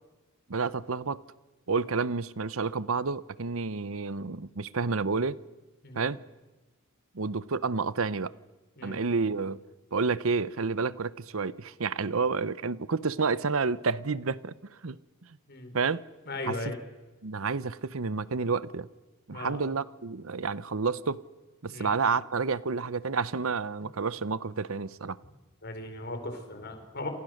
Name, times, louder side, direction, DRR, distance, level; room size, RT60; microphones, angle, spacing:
voice 1, 0.5-1.2 1.7-5.4 5.9-6.2 7.1-8.3 8.8-9.6 9.9-14.5 14.8-15.0 15.7-16.0 16.4-16.6 17.2-18.9 19.3-21.2 21.6-25.2, right 4 dB, 65° right, 0.8 m, -29 dB
voice 2, 16.3-16.8 19.3-19.6 21.7-21.9 25.6-27.1, left 2 dB, 50° left, 4.8 m, -37 dB
28.5 x 28.0 x 6.6 m
head